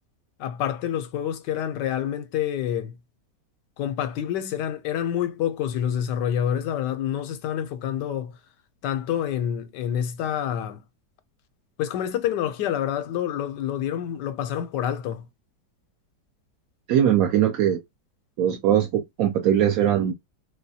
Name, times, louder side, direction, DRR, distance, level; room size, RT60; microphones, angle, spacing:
voice 1, 0.4-3.0 3.8-8.3 8.8-10.8 11.8-15.2, left 10 dB, 80° left, 1.2 m, -27 dB
voice 2, 16.9-17.8 18.4-20.1, right 10 dB, 70° right, 0.9 m, -21 dB
4.2 x 2.2 x 2.7 m
omnidirectional pair, 1.9 m